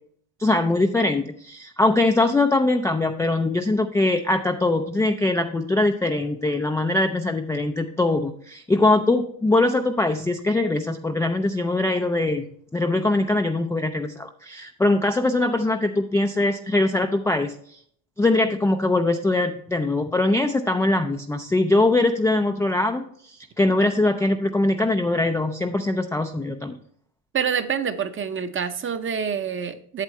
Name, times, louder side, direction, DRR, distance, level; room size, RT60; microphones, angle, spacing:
voice 1, 0.4-12.5 12.7-17.5 18.2-26.8, left 2 dB, 5° left, 4 dB, 0.4 m, -22 dB
voice 2, 27.3-30.0, right 7 dB, 25° right, 11 dB, 0.7 m, -27 dB
8.3 x 7.3 x 3.1 m, 0.62 s
supercardioid pair, 100°, 47 cm